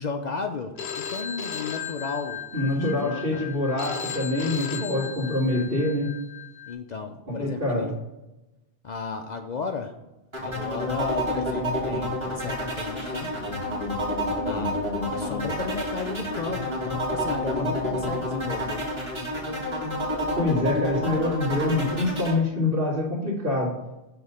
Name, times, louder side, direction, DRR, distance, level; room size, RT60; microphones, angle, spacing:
voice 1, 0.0-3.4 4.4-5.2 6.7-8.0 8.8-9.9 10.4-13.3 14.4-14.8 15.1-18.9, left 4 dB, 50° left, 5 dB, 0.6 m, -33 dB
Telephone, 0.8-6.7, left 7 dB, 90° left, 0.9 m, -36 dB
voice 2, 2.5-6.1 7.3-7.9 20.4-23.7, left 2 dB, 65° right, -11 dB, 2.1 m, -25 dB
sound 1, 10.3-22.3, equal, 25° right, 2.3 m, -29 dB
6.9 x 3.7 x 5.4 m, 0.96 s
omnidirectional pair, 1.0 m